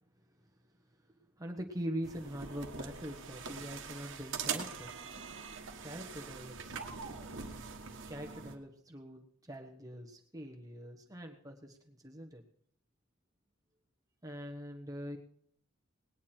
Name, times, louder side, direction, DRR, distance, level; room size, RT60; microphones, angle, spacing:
voice 1, 1.1-4.9 5.8-7.0 8.1-12.4 14.2-15.2, equal, 15° right, 2 dB, 1.2 m, -43 dB
sound 1, 2.0-8.6, right 5 dB, 60° right, 1.4 m, -43 dB
19.5 x 9.5 x 4.4 m, 0.63 s
head